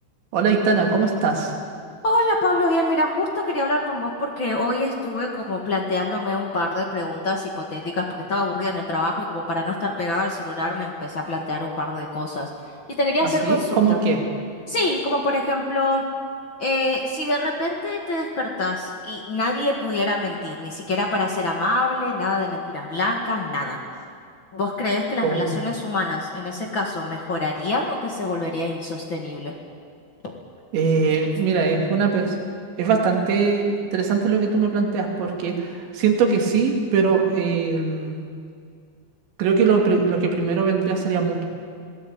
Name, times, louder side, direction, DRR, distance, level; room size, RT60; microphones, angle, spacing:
voice 1, 0.3-1.5 13.4-14.2 25.2-25.6 30.7-32.4 32.8-38.2 39.4-41.4, right 5 dB, 75° right, 1 dB, 4.8 m, -21 dB
voice 2, 2.0-12.5 13.0-14.0 14.7-16.0 16.6-23.8 24.5-29.5 30.2-30.3, left 2 dB, 50° left, 0 dB, 1.4 m, -25 dB
27.0 x 17.0 x 8.8 m, 2.2 s
omnidirectional pair, 5.3 m